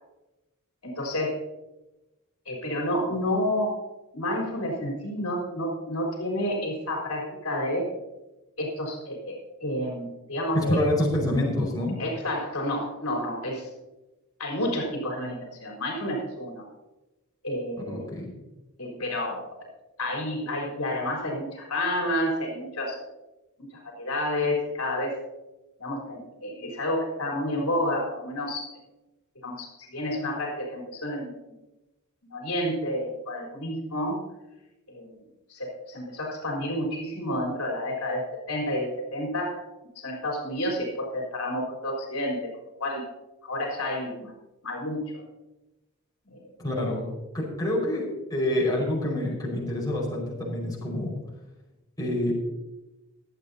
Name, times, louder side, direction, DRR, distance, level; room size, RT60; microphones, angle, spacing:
voice 1, 0.8-1.4 2.5-3.8 4.1-7.9 8.6-10.8 12.0-13.7 14.4-16.7 17.4-18.1 18.8-19.4 20.0-23.0 24.0-25.1 25.8-28.7 29.4-31.3 32.2-34.2 34.9-35.1 35.5-39.6 40.0-42.4 42.8-43.0 43.4-44.3 44.6-45.2 46.3-46.5, left 1 dB, 70° left, 0 dB, 3.9 m, -30 dB
voice 2, 10.5-11.9 17.8-18.3 46.6-47.1 47.3-48.0 48.3-51.1 52.0-52.3, left 1 dB, 15° left, -3 dB, 5.1 m, -27 dB
24.0 x 8.6 x 2.8 m, 1.0 s
head